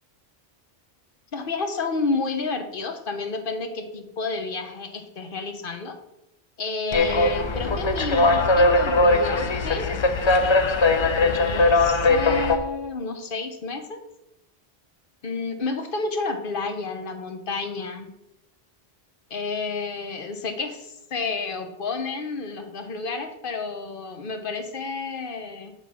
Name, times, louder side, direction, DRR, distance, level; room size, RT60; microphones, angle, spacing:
voice 1, 1.3-6.0 6.6-9.9 11.2-14.0 15.2-18.1 19.3-25.7, left 3 dB, 60° left, 6 dB, 1.0 m, -30 dB
sound 1, 6.9-12.6, left 2 dB, 40° left, 0.4 m, -20 dB
6.9 x 4.1 x 5.9 m, 0.87 s
omnidirectional pair, 1.1 m